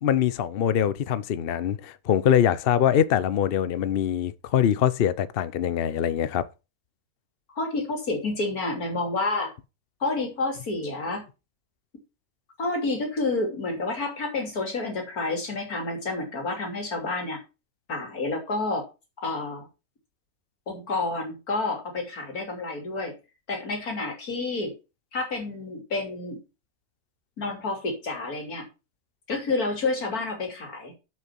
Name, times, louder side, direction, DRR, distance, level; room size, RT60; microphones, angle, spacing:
voice 1, 0.0-6.5, left 9 dB, 55° left, 0.7 m, -23 dB
voice 2, 7.6-9.5 10.0-11.3 12.6-17.4 17.9-18.8 19.2-19.7 20.7-23.2 23.5-24.7 25.1-26.4 27.4-28.7 29.3-30.9, left 3 dB, 85° left, 3.5 m, -29 dB
7.5 x 6.5 x 5.8 m
omnidirectional pair, 1.5 m